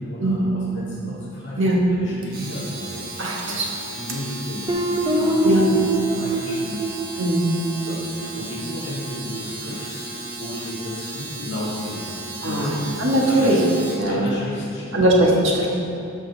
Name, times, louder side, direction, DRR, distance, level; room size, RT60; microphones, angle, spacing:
voice 1, 0.0-1.6 2.0-3.1 3.4-5.8 6.1-6.8 7.8-13.6 14.0-15.1, left 1 dB, 55° left, -8 dB, 2.1 m, -33 dB
Domestic sounds home sounds, 2.2-14.1, right 2 dB, 40° right, 1.3 m, -35 dB
voice 2, 3.2-3.7 5.4-5.7 7.2-7.5 12.4-13.6 14.0-14.4 14.9-15.7, right 1 dB, 60° right, -3 dB, 1.5 m, -20 dB
Guitar, 4.7-9.4, right 1 dB, 20° right, 0.7 m, -25 dB
13.0 x 5.5 x 4.0 m, 2.7 s
head